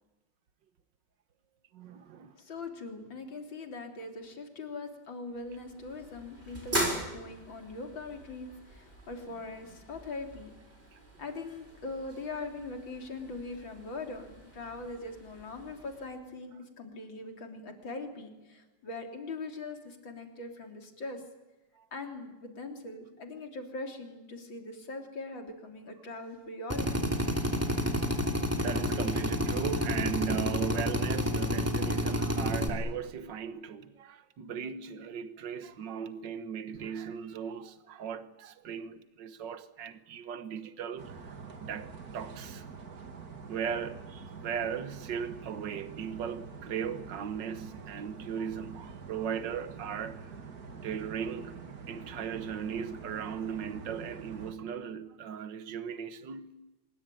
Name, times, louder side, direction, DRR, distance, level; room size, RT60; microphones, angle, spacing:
voice 1, 1.7-2.3 10.9-11.0 21.8-21.9 28.0-42.7 43.1-43.2 43.5-50.4 50.8-56.6, right 7 dB, 70° right, 2.0 m, -38 dB
voice 2, 2.4-10.5 11.2-21.3 21.9-27.1, left 3 dB, 85° left, 4.1 m, -41 dB
sound 1, 5.3-16.1, right 1 dB, 30° right, 6.7 m, -41 dB
Drill, 26.7-32.7, equal, 5° right, 2.9 m, -29 dB
sound 2, 41.0-54.5, right 5 dB, 50° right, 2.5 m, -46 dB
25.5 x 22.0 x 9.1 m
omnidirectional pair, 2.0 m